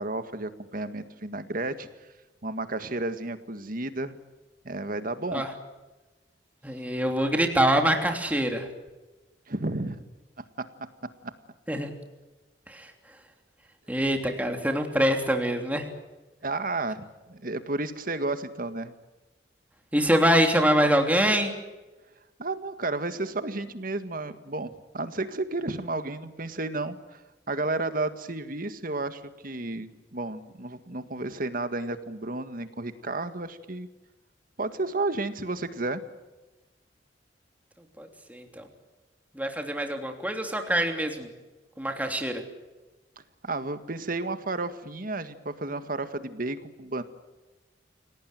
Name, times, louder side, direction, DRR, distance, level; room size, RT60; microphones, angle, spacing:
voice 1, 0.0-1.9 2.4-4.2 4.6-5.4 9.5-10.0 16.4-18.9 22.4-27.2 27.5-33.9 34.6-36.0 43.4-47.0, right 2 dB, 50° right, 10 dB, 1.8 m, -32 dB
voice 2, 6.6-8.7 11.7-11.9 12.7-12.9 13.9-15.8 19.9-21.5 38.0-38.6 39.4-41.3 41.8-42.4, equal, 10° right, 4 dB, 3.1 m, -24 dB
28.0 x 18.5 x 9.1 m, 1.2 s
head